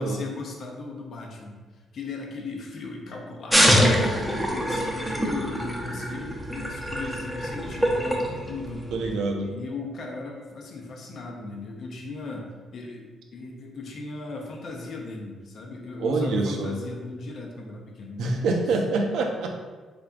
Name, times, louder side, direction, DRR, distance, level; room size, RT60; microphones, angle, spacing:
voice 1, 0.0-1.6 1.9-4.0 4.5-8.9 9.4-18.7, left 3 dB, 60° left, 1 dB, 0.6 m, -37 dB
sound 1, 3.5-9.1, equal, 5° right, 0.6 m, -24 dB
voice 2, 8.9-9.5 16.0-16.8 18.2-19.5, right 3 dB, 80° right, 2 dB, 0.5 m, -25 dB
3.7 x 3.4 x 2.4 m, 1.4 s
cardioid pair, 90°, 0 cm